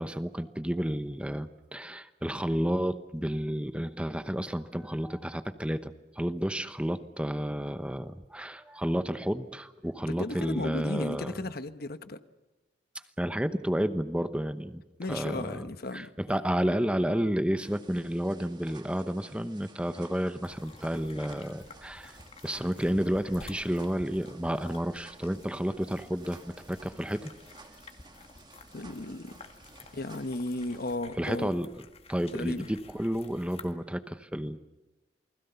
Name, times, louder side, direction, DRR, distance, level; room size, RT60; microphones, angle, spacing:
voice 1, 0.0-11.3 13.2-14.8 15.1-22.2 22.4-27.3 31.2-31.7 32.1-34.6, equal, 5° right, 11 dB, 0.9 m, -31 dB
voice 2, 10.1-12.2 15.0-16.1 28.7-29.4 29.9-31.5 32.3-32.7, left 2 dB, 55° left, 11 dB, 1.2 m, -35 dB
sound 1, 17.6-31.0, right 3 dB, 25° right, 2.5 m, -54 dB
sound 2, 20.4-33.7, left 3 dB, 35° left, 1.9 m, -52 dB
29.0 x 20.5 x 7.0 m, 1.1 s
head